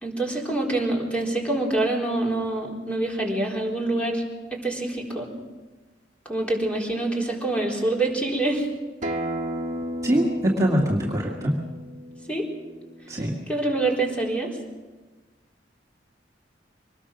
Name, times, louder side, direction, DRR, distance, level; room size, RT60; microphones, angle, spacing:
voice 1, 0.0-4.2 4.5-5.3 6.3-8.7 12.3-12.5 13.5-14.5, right 2 dB, 5° left, -1 dB, 4.1 m, -26 dB
Acoustic guitar, 9.0-14.2, right 1 dB, 45° right, 1.7 m, -34 dB
voice 2, 10.0-11.5 13.1-13.3, equal, 20° right, -4 dB, 2.3 m, -23 dB
24.0 x 20.0 x 6.2 m, 1.2 s
head